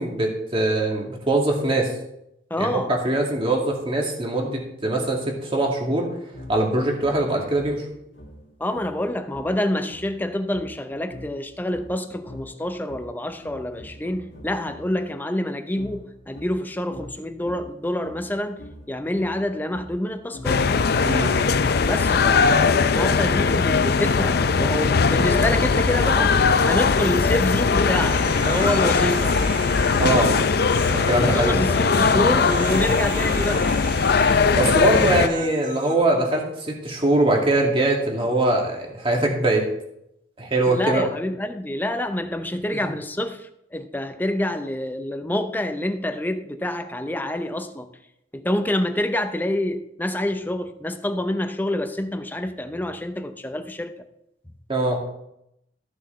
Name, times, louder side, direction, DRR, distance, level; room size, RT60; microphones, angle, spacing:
voice 1, 0.0-1.9 2.6-6.1 6.5-7.8 21.0-21.3 30.0-30.3 30.9-31.6 34.5-39.6 40.4-41.1 42.7-42.9 54.7-55.0, right 2 dB, 30° right, 2.3 m, -22 dB
voice 2, 2.5-2.9 8.6-18.6 18.9-20.6 21.8-26.4 26.6-29.3 30.8-33.7 40.7-47.9 48.3-53.9, left 1 dB, 10° left, 0.7 m, -27 dB
sound 1, 6.3-15.1 15.7-24.4, left 1 dB, 85° left, 2.1 m, -44 dB
sound 2, 20.4-35.3, left 5 dB, 60° left, 0.5 m, -20 dB
Human voice, 27.9-35.9, right 3 dB, 45° right, 1.5 m, -36 dB
14.0 x 6.5 x 4.5 m
head